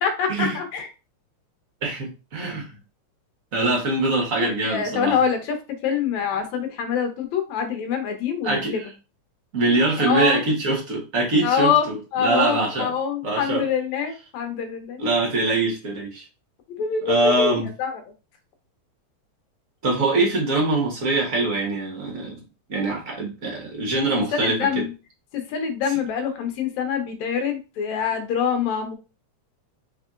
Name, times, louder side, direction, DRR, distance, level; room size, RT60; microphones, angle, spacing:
voice 1, 0.0-0.9 4.4-5.6 5.8-8.8 10.0-10.5 11.4-11.8 12.1-15.0 16.8-17.9 24.1-24.9 25.3-28.9, left 7 dB, 75° left, 5 dB, 2.2 m, -25 dB
voice 2, 1.8-2.7 3.5-5.2 8.4-8.9 9.5-12.9 13.2-13.6 15.0-16.2 17.0-17.7 19.8-22.4 22.7-24.8, right 2 dB, 45° right, -1 dB, 1.1 m, -23 dB
4.7 x 3.7 x 2.4 m, 0.31 s
omnidirectional pair, 3.3 m